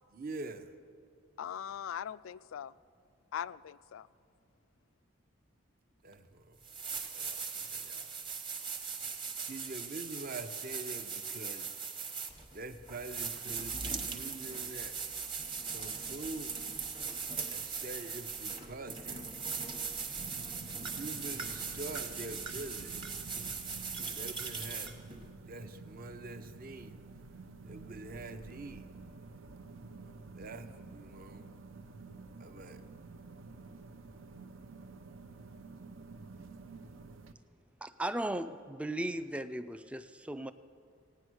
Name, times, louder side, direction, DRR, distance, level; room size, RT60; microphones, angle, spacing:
voice 1, 0.1-0.7 6.0-6.6 7.1-8.1 9.3-11.7 12.5-15.0 15.6-16.6 17.5-19.3 21.0-23.1 24.1-25.0 25.4-27.0 27.6-28.9 30.3-31.5 32.4-32.8, right 2 dB, 45° right, 9 dB, 0.7 m, -45 dB
voice 2, 1.4-2.7 3.3-4.1, left 9 dB, 80° left, 18 dB, 0.3 m, -40 dB
sound 1, 6.1-6.2 6.6-25.3, right 5 dB, 25° right, 1.0 m, -40 dB
sound 2, 20.2-37.3, right 3 dB, 80° right, 0.7 m, -50 dB
voice 3, 37.8-40.5, right 1 dB, 5° right, 10 dB, 0.3 m, -36 dB
17.0 x 9.3 x 6.2 m, 2.3 s
head